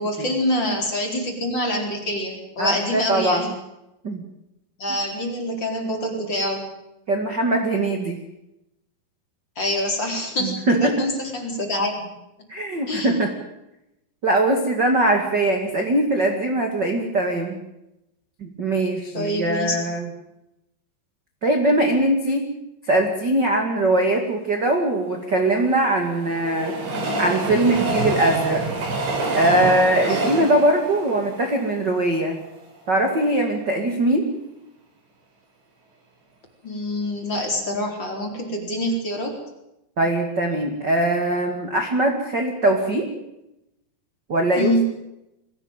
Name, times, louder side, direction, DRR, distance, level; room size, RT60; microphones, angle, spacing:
voice 1, 0.0-3.5 4.8-6.7 9.6-12.1 12.9-13.1 19.1-19.8 30.1-30.4 36.6-39.4 44.6-44.8, left 1 dB, 25° left, 2 dB, 4.6 m, -26 dB
voice 2, 2.6-3.5 4.0-4.2 7.1-8.2 10.4-11.0 12.5-13.3 14.2-17.6 18.4-20.1 21.4-22.5 22.9-26.7 27.2-28.6 29.3-32.4 32.9-34.3 40.0-43.1 44.3-44.7, right 1 dB, 30° right, 4 dB, 2.2 m, -21 dB
Train, 25.1-32.4 32.9-33.0 33.2-33.3, right 2 dB, 75° right, 7.0 m, -27 dB
23.0 x 16.5 x 9.0 m, 0.89 s
omnidirectional pair, 5.0 m